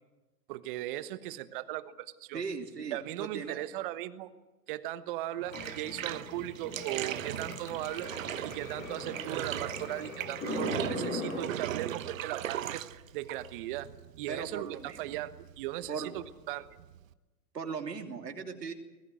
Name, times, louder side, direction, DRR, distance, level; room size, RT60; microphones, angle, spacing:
voice 1, 0.5-2.4 2.9-4.3 4.7-8.1 8.4-12.8 13.1-13.9 14.2-16.7, right 14 dB, 30° right, 13 dB, 1.3 m, -38 dB
voice 2, 2.3-3.6 14.3-15.2 15.9-16.2 17.5-18.7, right 5 dB, 75° right, 3 dB, 3.1 m, -38 dB
sound 1, 5.4-11.4, left 1 dB, 20° left, 6.5 m, -40 dB
Bathtub (filling or washing), 5.5-17.1, right 11 dB, 55° right, 1.3 m, -39 dB
24.5 x 20.5 x 7.7 m, 1.1 s
hypercardioid pair, 130°, 48 cm